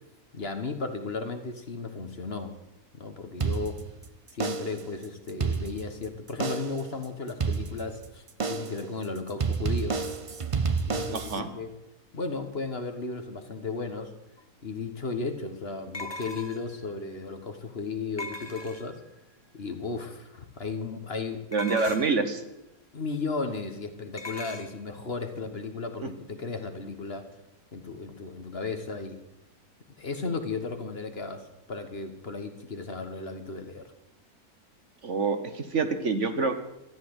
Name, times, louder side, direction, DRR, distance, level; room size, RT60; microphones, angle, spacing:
voice 1, 0.3-2.5 2.9-3.9 4.3-10.0 10.8-11.7 12.1-14.1 14.6-19.0 19.5-21.5 22.9-27.3 27.7-29.2 30.0-33.9, left 4 dB, 45° left, 7 dB, 1.5 m, -35 dB
sound 1, 3.4-4.0 4.4-4.9 5.3-6.0 6.4-6.9 7.4-8.0 8.4-8.9 9.4-11.4, right 5 dB, 40° right, 0.5 m, -30 dB
voice 2, 11.1-11.5 21.5-22.4 26.0-26.1 35.0-36.6, right 4 dB, 55° right, 8 dB, 1.5 m, -27 dB
sound 2, 14.4-14.5 15.9-16.8 18.2-19.1 21.5-22.2 24.2-24.7, left 2 dB, 20° left, 0.8 m, -39 dB
13.5 x 11.0 x 7.9 m, 0.91 s
omnidirectional pair, 1.6 m